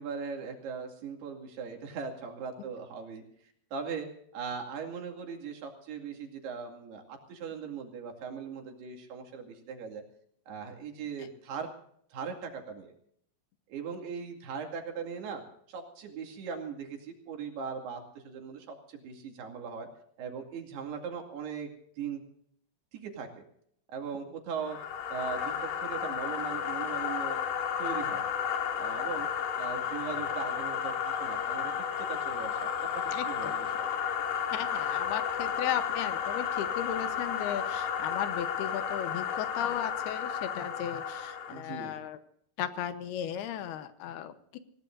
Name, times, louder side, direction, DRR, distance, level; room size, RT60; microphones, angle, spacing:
voice 1, 0.0-3.2 3.7-4.1 4.3-10.0 10.5-11.7 12.1-12.9 13.7-15.4 15.7-19.9 20.2-21.7 22.0-22.2 22.9-23.4 23.9-24.8 25.1-27.4 27.8-28.3 28.7-29.3 29.6-31.7 32.0-33.9 41.5-42.0, right 6 dB, 85° right, 2 dB, 4.5 m, -39 dB
sound 1, 24.6-41.6, left 8 dB, 65° left, 3.2 m, -33 dB
voice 2, 33.1-33.6 34.5-42.2 42.6-44.6, left 10 dB, 85° left, 11 dB, 3.0 m, -36 dB
26.5 x 17.5 x 2.6 m, 0.67 s
omnidirectional pair, 4.5 m